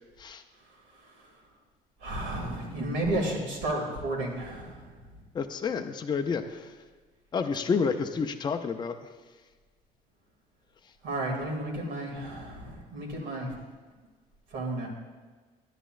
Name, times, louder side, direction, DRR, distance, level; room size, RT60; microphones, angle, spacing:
voice 1, 2.0-4.8 11.0-13.5 14.5-14.9, right 1 dB, 85° right, -1 dB, 2.3 m, -32 dB
voice 2, 5.3-6.8 7.3-9.1, left 5 dB, 25° left, 6 dB, 0.5 m, -30 dB
11.0 x 10.0 x 2.5 m, 1.4 s
cardioid pair, 110°, 17 cm